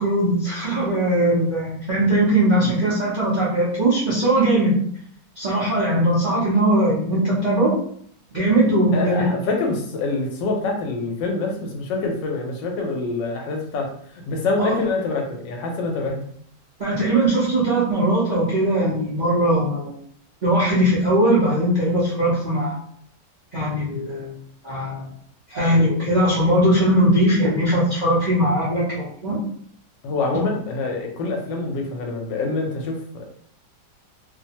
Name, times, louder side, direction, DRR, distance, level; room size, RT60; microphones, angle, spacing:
voice 1, 0.0-4.7 5.4-7.7 8.3-9.3 14.6-14.8 16.8-19.9 20.4-22.8 23.5-24.3 24.6-25.1 25.5-29.4 30.2-30.4, right 1 dB, 65° right, -8 dB, 0.4 m, -20 dB
voice 2, 8.9-13.9 14.3-16.2 30.0-33.2, left 3 dB, 80° left, 2 dB, 1.3 m, -26 dB
3.0 x 2.0 x 2.8 m, 0.62 s
omnidirectional pair, 2.0 m